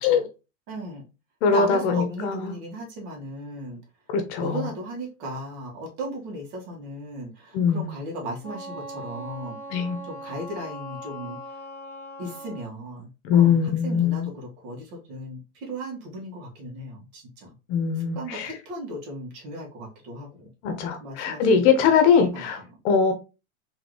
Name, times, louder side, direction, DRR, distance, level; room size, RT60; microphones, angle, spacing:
voice 1, 0.7-1.0 1.5-3.8 4.4-9.6 10.0-11.4 12.2-17.5 18.1-20.5 21.0-21.7 22.2-22.8, right 1 dB, 50° right, 2.0 m, -36 dB
voice 2, 1.4-2.5 4.1-4.6 7.5-7.9 9.7-10.0 13.2-14.3 17.7-18.5 20.6-23.1, left 6 dB, 50° left, 1.0 m, -21 dB
Wind instrument woodwind instrument, 8.4-12.7, equal, 5° left, 1.5 m, -40 dB
3.9 x 3.5 x 3.2 m
supercardioid pair, 140°, 42 cm